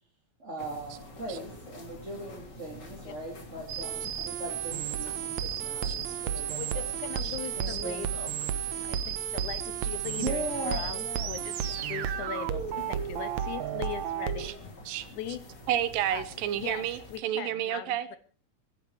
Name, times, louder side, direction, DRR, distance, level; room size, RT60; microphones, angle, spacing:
voice 1, 0.4-6.8 7.6-8.0 10.2-11.4, right 1 dB, 20° right, -2 dB, 3.0 m, -39 dB
sound 1, 0.6-17.2, left 1 dB, 30° left, 3.4 m, -47 dB
sound 2, 3.7-14.5, right 9 dB, 65° right, 2.0 m, -33 dB
voice 2, 6.6-8.3 8.8-14.6 15.1-15.4 16.1-16.2 16.5-18.2, left 10 dB, 70° left, 13 dB, 2.1 m, -40 dB
voice 3, 15.7-18.2, right 11 dB, 85° right, 14 dB, 2.8 m, -31 dB
23.5 x 11.0 x 4.7 m, 0.43 s
omnidirectional pair, 3.9 m